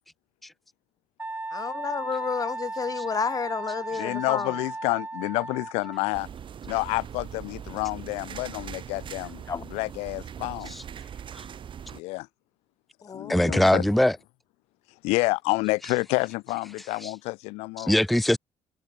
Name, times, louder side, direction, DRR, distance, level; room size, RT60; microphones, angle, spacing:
Wind instrument woodwind instrument, 1.2-6.2, right 2 dB, 20° right, 4.2 m, -36 dB
voice 1, 1.6-4.5 9.5-9.6 13.0-13.7, left 6 dB, 35° left, 0.9 m, -31 dB
voice 2, 3.9-6.3 6.6-9.4 9.7-10.7 11.9-12.3 13.1-13.8 15.0-17.9, left 24 dB, 85° left, 1.1 m, -29 dB
sound 1, 6.1-12.0, right 8 dB, 50° right, 3.5 m, -41 dB
voice 3, 13.3-14.2 17.0-17.1 17.8-18.4, left 1 dB, ahead, 0.4 m, -21 dB
supercardioid pair, 70°, 10 cm